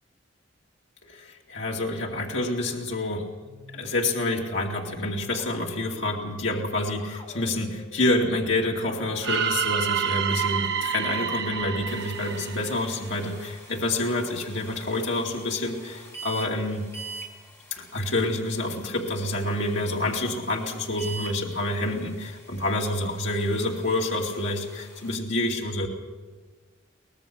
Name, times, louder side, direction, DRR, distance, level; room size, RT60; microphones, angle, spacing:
voice 1, 1.1-3.3 3.7-16.9 17.7-25.9, left 1 dB, 70° left, -1 dB, 2.5 m, -28 dB
sound 1, 3.4-12.0, left 2 dB, 40° left, 3.9 m, -50 dB
sound 2, 9.2-13.3, right 8 dB, 60° right, 1.1 m, -28 dB
sound 3, 11.9-25.1, right 3 dB, 15° left, 5.0 m, -45 dB
23.5 x 19.0 x 6.2 m, 1.4 s
head